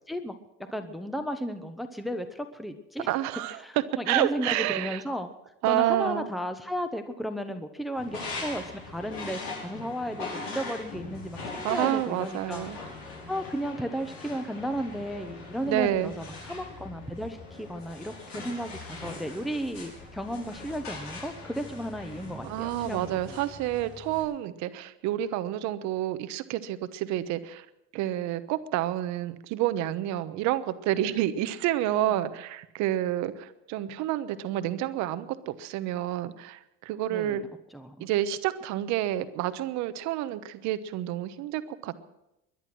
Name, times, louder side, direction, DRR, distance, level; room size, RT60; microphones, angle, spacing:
voice 1, 0.7-3.1 3.6-5.3 5.7-12.7 13.3-23.3 37.1-37.4 37.7-38.1, equal, ahead, 8 dB, 1.1 m, -34 dB
voice 2, 3.1-3.6 4.1-5.0 5.6-6.3 11.6-12.8 15.6-16.1 22.4-27.7 27.9-37.4 38.0-42.0, right 13 dB, 75° right, 12 dB, 1.1 m, -29 dB
sound 1, 8.0-24.2, left 3 dB, 90° left, 5.6 m, -41 dB
22.0 x 10.5 x 6.2 m, 0.88 s
supercardioid pair, 95°, 29 cm